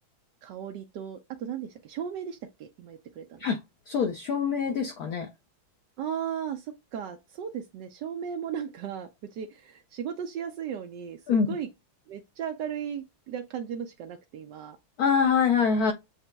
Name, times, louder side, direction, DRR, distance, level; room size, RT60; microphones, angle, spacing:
voice 1, 0.4-3.4 6.0-11.7 12.1-14.8, right 8 dB, 75° right, 1.0 m, -36 dB
voice 2, 3.9-5.3 11.3-11.5 15.0-15.9, left 6 dB, 75° left, 0.8 m, -24 dB
8.0 x 2.9 x 2.2 m
omnidirectional pair, 2.3 m